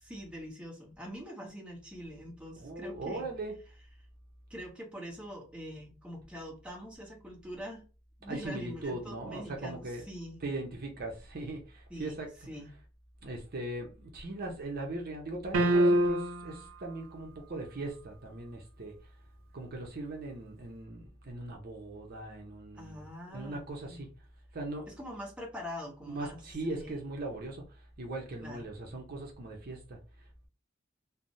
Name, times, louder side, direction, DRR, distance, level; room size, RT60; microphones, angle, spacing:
voice 1, 0.0-3.3 4.5-7.8 8.2-10.4 11.9-12.2 12.5-12.7 22.8-24.0 25.0-26.4 26.7-27.0 28.4-28.7, equal, 5° right, 0.9 m, -44 dB
voice 2, 2.6-3.5 8.3-10.1 10.4-12.3 13.2-19.1 19.5-23.0 23.3-24.1 24.5-24.9 26.1-30.5, right 2 dB, 50° right, 0.6 m, -39 dB
sound 1, 15.5-16.6, right 1 dB, 90° right, 0.5 m, -25 dB
3.2 x 2.0 x 2.6 m
head